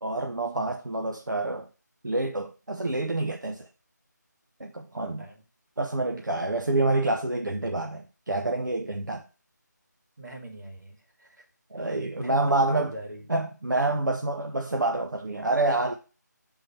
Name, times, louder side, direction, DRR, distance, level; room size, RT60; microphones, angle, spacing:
voice 1, 0.0-1.7 2.0-3.7 4.6-5.2 5.8-9.2 11.7-12.9 13.3-15.9, right 2 dB, 90° right, 0.8 m, -27 dB
voice 2, 4.9-5.4 9.0-9.1 10.2-11.4 11.7-13.3, right 1 dB, 70° right, 2.5 m, -42 dB
6.7 x 3.8 x 4.4 m
figure-of-eight pair, 165°, 10 cm